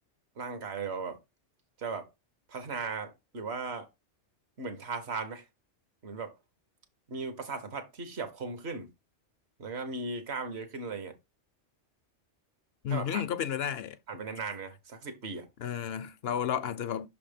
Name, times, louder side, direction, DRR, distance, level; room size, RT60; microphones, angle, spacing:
voice 1, 0.4-1.2 1.8-2.1 2.5-3.9 4.6-5.4 6.0-6.3 7.1-8.9 9.6-11.1 12.9-13.2 14.1-15.5, right 4 dB, 65° right, 1.4 m, -37 dB
voice 2, 12.8-14.0 15.6-17.1, left 9 dB, 65° left, 0.8 m, -32 dB
6.3 x 3.4 x 5.0 m
omnidirectional pair, 1.2 m